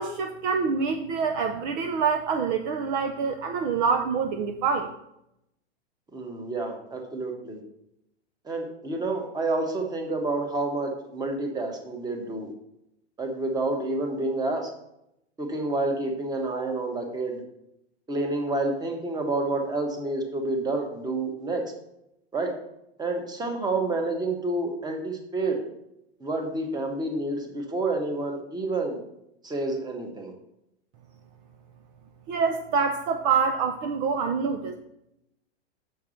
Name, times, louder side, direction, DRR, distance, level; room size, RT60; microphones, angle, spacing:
voice 1, 0.0-4.9 32.3-34.7, right 5 dB, 40° right, 5 dB, 0.7 m, -26 dB
voice 2, 6.1-7.6 8.5-12.5 13.2-14.7 15.4-17.4 18.1-21.6 22.3-22.5 23.0-25.6 26.2-29.0 29.4-30.3, right 2 dB, 10° right, 3 dB, 1.2 m, -29 dB
6.9 x 4.7 x 6.3 m, 0.82 s
hypercardioid pair, 135°, 33 cm